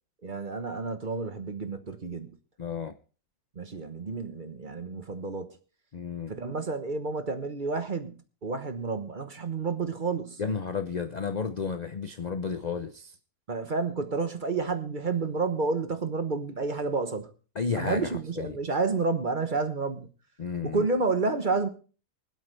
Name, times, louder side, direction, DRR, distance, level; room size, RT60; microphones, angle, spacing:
voice 1, 0.2-2.4 3.5-5.6 6.3-10.4 13.5-17.3 17.7-20.1 20.6-21.7, right 4 dB, 35° right, 8 dB, 1.1 m, -30 dB
voice 2, 2.6-2.9 5.9-6.3 10.4-13.1 17.6-18.6 20.4-20.9, left 5 dB, 60° left, 8 dB, 0.4 m, -32 dB
24.0 x 8.3 x 3.3 m, 0.37 s
omnidirectional pair, 1.7 m